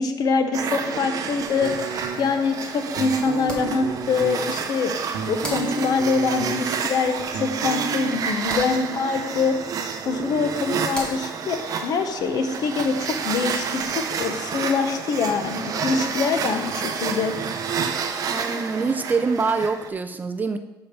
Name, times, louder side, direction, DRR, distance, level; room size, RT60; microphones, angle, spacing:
voice 1, 0.0-1.9 2.2-4.9 5.3-9.5 10.1-17.3, left 4 dB, 55° left, 7 dB, 0.8 m, -24 dB
sound 1, 0.5-19.9, right 6 dB, 45° right, 0.7 m, -30 dB
sound 2, 1.3-14.2, equal, 10° left, 1.6 m, -43 dB
sound 3, 1.6-2.5 2.9-4.4 4.9-6.8 7.1-8.1, right 5 dB, 80° right, 1.0 m, -32 dB
voice 2, 18.3-20.6, right 4 dB, 20° right, 8 dB, 0.3 m, -25 dB
5.8 x 5.3 x 6.8 m, 1.0 s
cardioid pair, 165°, 8 cm